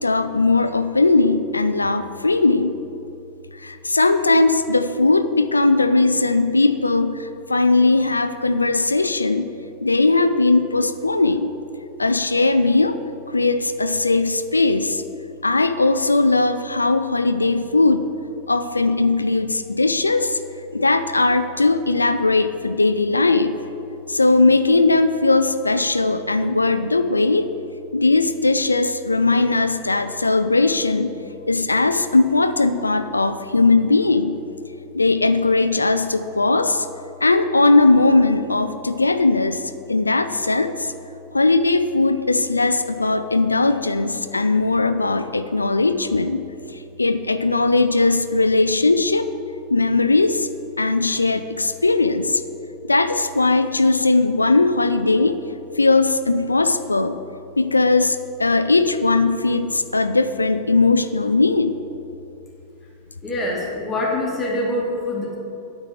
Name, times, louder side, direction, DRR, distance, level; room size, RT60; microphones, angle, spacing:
voice 1, 0.0-2.7 3.6-9.4 9.8-11.5 12.0-13.0 13.3-15.0 15.4-18.1 18.5-20.4 20.7-23.5 24.1-27.5 27.9-31.1 31.5-34.4 34.9-36.9 37.2-39.6 39.9-40.9 41.3-46.4 47.0-49.3 49.7-50.5 50.8-52.4 52.9-55.4 55.8-57.2 57.6-61.8, left 3 dB, 80° left, 11 dB, 0.4 m, -19 dB
voice 2, 63.2-65.3, left 1 dB, 20° left, -4 dB, 2.1 m, -24 dB
9.3 x 5.9 x 8.2 m, 2.9 s
figure-of-eight pair, 90°, 0 cm